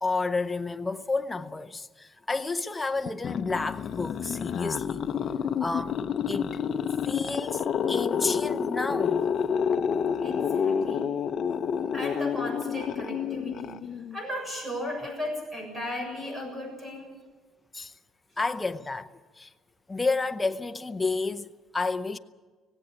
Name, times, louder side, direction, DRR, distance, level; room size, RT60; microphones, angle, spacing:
voice 1, 0.0-5.1 5.6-6.0 6.3-6.6 7.0-9.2 17.7-17.9 18.4-19.1 19.4-19.5 19.9-22.2, left 3 dB, 10° left, 0.8 m, -30 dB
sound 1, 3.1-14.2, left 7 dB, 45° left, 0.8 m, -29 dB
voice 2, 10.2-11.1 11.9-13.8 14.1-17.1, left 1 dB, 15° right, 7.0 m, -35 dB
17.5 x 17.0 x 10.0 m
cardioid pair, 155°, 0 cm